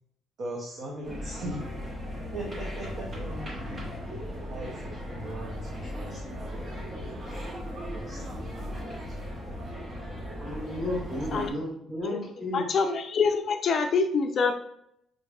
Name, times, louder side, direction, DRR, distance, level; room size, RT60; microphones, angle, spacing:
voice 1, 0.4-1.6 2.3-3.9 4.5-6.9 7.9-9.3 9.8-9.9, right 1 dB, 50° right, -2 dB, 0.6 m, -40 dB
sound 1, 1.0-11.5, equal, 25° right, 1.0 m, -37 dB
voice 2, 10.4-12.7, left 1 dB, 10° right, -5 dB, 1.4 m, -33 dB
voice 3, 12.5-14.5, left 5 dB, 40° left, 6 dB, 0.4 m, -25 dB
5.0 x 3.3 x 2.3 m, 0.74 s
cardioid pair, 170°, 0 cm